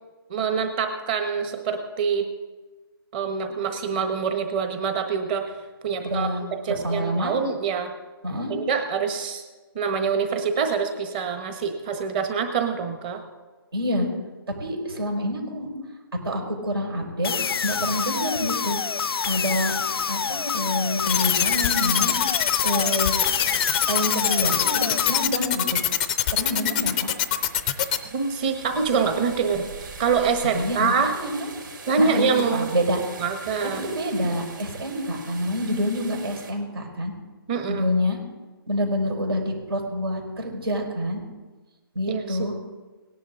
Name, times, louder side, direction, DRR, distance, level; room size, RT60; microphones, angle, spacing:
voice 1, 0.3-2.3 3.1-5.5 5.8-7.9 8.5-9.4 9.7-13.2 28.1-31.1 31.9-32.7 33.2-33.8 37.5-37.9 42.1-42.4, right 5 dB, 25° right, 6 dB, 1.3 m, -25 dB
voice 2, 6.0-7.4 8.2-8.5 13.7-14.1 14.6-15.7 16.2-17.3 17.6-18.8 19.3-19.7 20.1-22.1 22.6-23.1 23.9-25.8 26.3-27.1 30.4-31.5 32.0-33.0 33.6-37.1 37.7-38.2 38.7-41.2 42.0-42.6, equal, 80° right, 0 dB, 5.0 m, -27 dB
sound 1, 17.2-25.2, left 6 dB, 80° left, 0.4 m, -27 dB
sound 2, 21.1-28.0, left 11 dB, 20° left, 0.5 m, -23 dB
sound 3, 26.2-36.5, right 4 dB, 60° right, 3.7 m, -42 dB
18.5 x 10.5 x 3.8 m, 1.2 s
hypercardioid pair, 165°, 12 cm